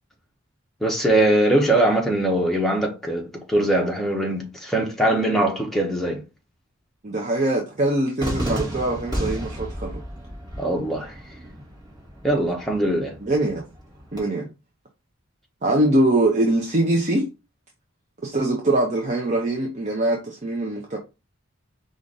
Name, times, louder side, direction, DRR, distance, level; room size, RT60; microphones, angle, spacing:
voice 1, 0.8-6.2 10.6-11.1 12.2-13.1, right 1 dB, ahead, 0.8 m, -21 dB
voice 2, 7.0-10.0 13.2-13.6 14.1-14.5 15.6-17.3 18.2-21.0, right 1 dB, 35° right, 0.7 m, -22 dB
Cheering / Fireworks, 8.2-14.2, equal, 20° right, 1.9 m, -33 dB
4.8 x 2.5 x 3.9 m
head